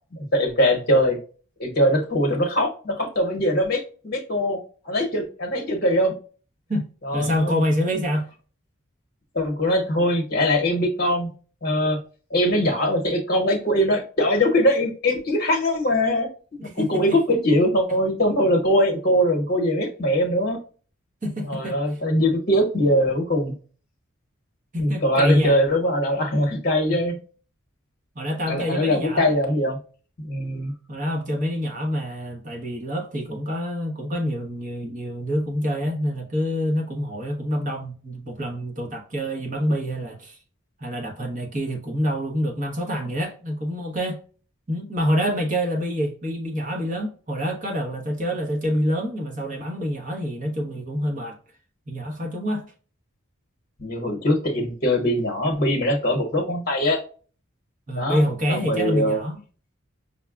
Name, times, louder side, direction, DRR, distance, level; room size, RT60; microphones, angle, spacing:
voice 1, 0.1-1.2 1.6-4.6 4.8-6.1 7.0-7.6 9.3-11.3 11.6-12.0 12.3-16.3 16.6-20.6 21.4-23.5 24.8-27.1 28.5-29.8 30.2-30.7 53.8-57.0 58.0-59.2, equal, 45° left, 0.9 m, -22 dB
voice 2, 7.1-8.3 16.6-17.2 21.2-21.8 24.7-25.6 28.2-29.3 30.9-40.4 40.8-44.2 44.7-51.4 51.9-52.7 57.9-59.4, equal, 35° right, 0.9 m, -26 dB
5.4 x 2.2 x 2.3 m
head